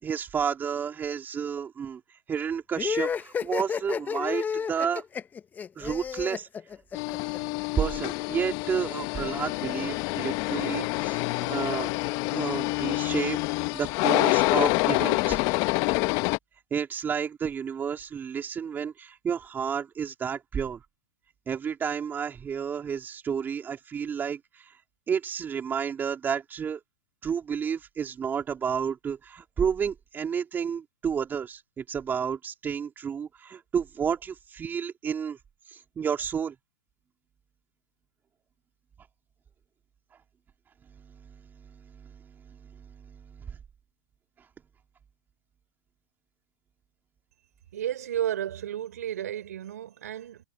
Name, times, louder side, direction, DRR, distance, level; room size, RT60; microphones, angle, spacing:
voice 1, 0.0-5.0 5.8-6.5 7.7-11.9 12.3-15.4 16.7-20.8 21.5-24.8 25.1-26.8 27.2-35.4 35.7-36.5 41.0-43.6, right 7 dB, 20° right, 3.5 m, -31 dB
sound 1, 2.8-7.4, left 7 dB, 20° left, 0.9 m, -31 dB
sound 2, 6.9-16.4, left 25 dB, 45° left, 1.3 m, -27 dB
voice 2, 47.7-50.4, right 11 dB, 75° right, 4.9 m, -32 dB
hypercardioid pair, 105°, 9 cm